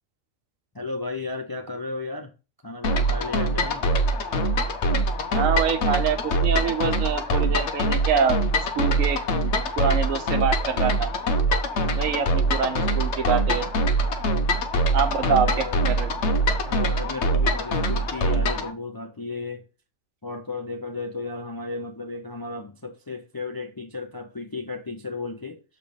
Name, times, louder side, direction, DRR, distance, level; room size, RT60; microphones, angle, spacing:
voice 1, 0.7-2.3 2.6-3.9 15.2-15.8 16.7-19.6 20.2-25.6, left 3 dB, 35° left, 0.3 m, -34 dB
sound 1, 2.8-18.7, right 1 dB, 65° left, 1.0 m, -23 dB
voice 2, 5.3-8.4 8.8-11.1 11.9-13.7 14.9-15.5 15.9-16.1, right 7 dB, 90° right, 1.3 m, -25 dB
6.8 x 3.3 x 5.2 m
omnidirectional pair, 1.4 m